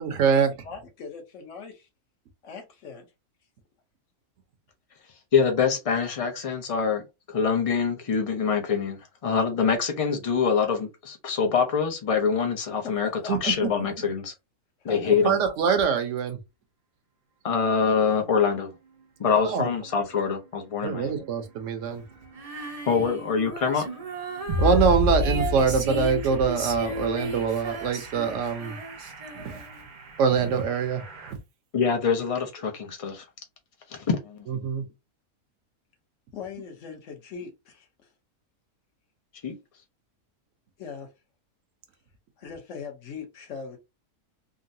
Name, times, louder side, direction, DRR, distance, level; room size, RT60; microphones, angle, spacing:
voice 1, 0.0-0.5 13.3-13.4 15.2-16.4 19.4-19.7 20.8-22.0 24.6-28.8 29.3-29.6 30.2-31.0 34.5-34.8, right 6 dB, 60° right, 1.0 m, -24 dB
voice 2, 0.6-1.9 2.4-3.0 13.0-13.7 14.8-15.3 36.3-37.9 40.8-41.1 42.4-43.8, left 5 dB, 60° left, 1.2 m, -40 dB
voice 3, 5.3-7.0 7.3-9.0 9.2-14.3 14.8-15.4 17.4-18.7 19.2-21.1 22.9-23.9 31.7-33.2 33.9-34.5 39.4-39.6, left 6 dB, 40° left, 0.4 m, -25 dB
sound 1, 22.2-22.3 22.6-31.3, left 2 dB, 85° right, 0.4 m, -32 dB
Female singing, 22.3-29.8, right 2 dB, 40° right, 0.6 m, -35 dB
3.8 x 2.1 x 2.6 m
omnidirectional pair, 1.5 m